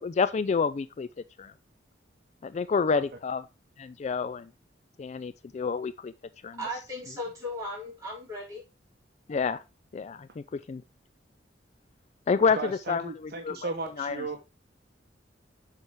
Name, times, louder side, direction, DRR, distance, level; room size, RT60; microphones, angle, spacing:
voice 1, 0.0-1.1 1.4-1.5 2.4-3.4 3.8-4.5 5.0-6.1 6.4-6.6 9.3-9.6 9.9-10.8 12.3-13.7 14.0-14.3, left 5 dB, 40° left, 0.3 m, -28 dB
voice 2, 6.6-8.6, left 1 dB, 20° right, 4.5 m, -36 dB
voice 3, 12.5-14.4, right 3 dB, 60° right, 1.0 m, -35 dB
7.2 x 4.6 x 4.6 m
head